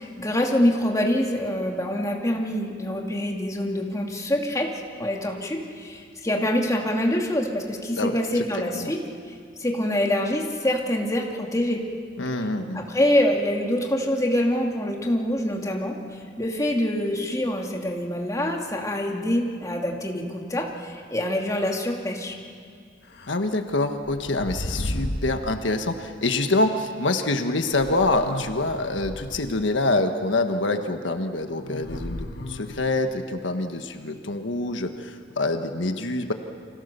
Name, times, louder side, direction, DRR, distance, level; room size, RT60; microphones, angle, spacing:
voice 1, 0.0-4.7 5.0-9.0 9.6-11.8 12.7-22.3, left 1 dB, 20° left, 0 dB, 2.6 m, -25 dB
voice 2, 12.2-12.8 23.3-36.3, left 2 dB, 85° left, 6 dB, 1.4 m, -26 dB
sound 1, 23.1-23.3 24.1-25.4 26.6-26.7 27.7-29.5 31.6-33.1, left 1 dB, 65° left, 1.6 m, -33 dB
30.0 x 25.0 x 6.8 m, 2.2 s
head